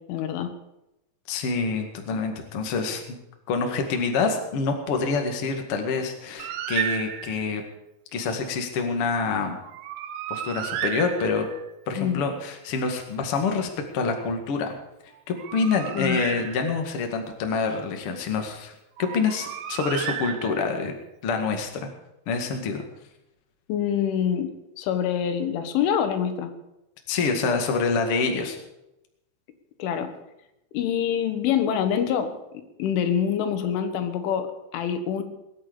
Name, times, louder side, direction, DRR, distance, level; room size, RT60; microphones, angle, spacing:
voice 1, 0.1-0.5 12.0-12.2 15.9-16.2 23.7-26.5 29.8-30.1 30.7-35.2, left 8 dB, 90° left, 8 dB, 3.9 m, -26 dB
voice 2, 1.3-3.0 3.5-7.6 8.1-9.6 10.3-11.5 11.9-13.7 13.9-14.8 15.3-20.9 21.2-21.9 22.3-22.8 27.1-28.6, left 4 dB, 45° left, 4 dB, 1.9 m, -26 dB
Bird, 6.4-7.6 9.6-11.7 15.1-17.0 19.0-20.9, right 11 dB, 90° right, 3.5 m, -33 dB
21.0 x 9.0 x 6.9 m, 0.89 s
omnidirectional pair, 5.4 m